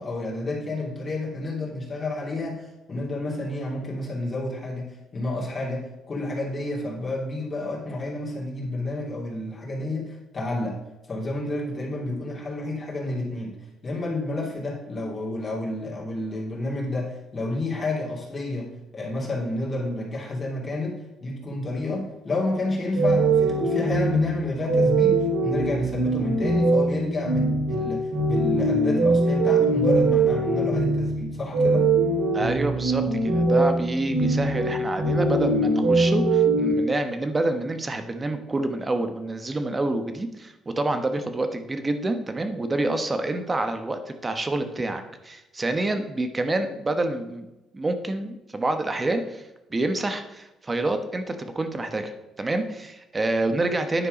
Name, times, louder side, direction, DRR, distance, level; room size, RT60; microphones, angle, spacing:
voice 1, 0.0-10.8 11.1-13.6 13.8-31.9, left 2 dB, 35° left, -3 dB, 2.7 m, -30 dB
sound 1, 22.9-36.7, right 2 dB, 80° right, 3.2 m, -22 dB
voice 2, 32.3-54.1, right 2 dB, 25° right, 8 dB, 1.0 m, -27 dB
10.0 x 4.5 x 5.1 m, 0.99 s
cardioid pair, 85°, 0 cm